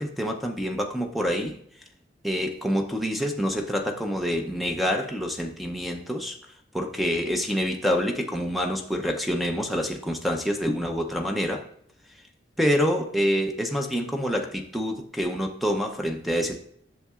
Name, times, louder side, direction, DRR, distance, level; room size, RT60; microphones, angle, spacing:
voice 1, 0.0-1.6 2.2-6.4 6.7-11.6 12.6-16.6, equal, ahead, 3 dB, 0.5 m, -27 dB
11.0 x 6.5 x 2.4 m, 0.67 s
head